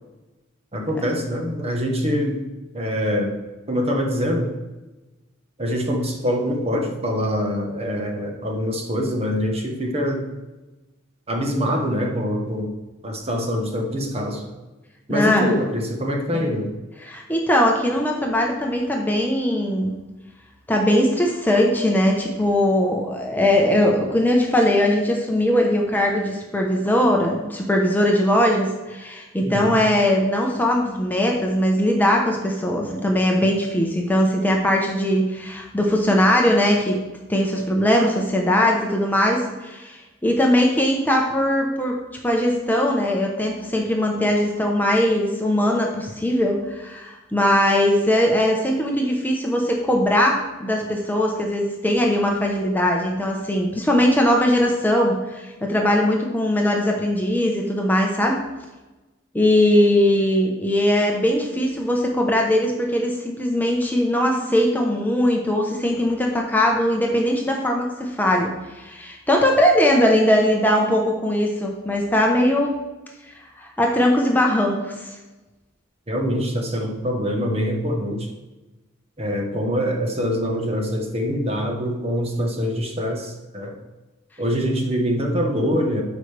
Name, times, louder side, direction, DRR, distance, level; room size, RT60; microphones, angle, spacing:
voice 1, 0.7-2.5 2.7-3.4 3.7-4.5 5.6-10.3 11.3-12.7 13.0-14.5 15.1-16.7 29.4-29.8 76.1-78.3 79.2-83.8 84.4-86.0, equal, 30° right, 2 dB, 1.1 m, -24 dB
voice 2, 15.1-15.5 17.0-19.9 20.7-37.0 37.3-42.0 42.2-58.4 59.3-72.7 73.6-75.2, left 1 dB, 10° left, 0 dB, 0.9 m, -20 dB
12.5 x 5.2 x 3.3 m, 1.1 s
head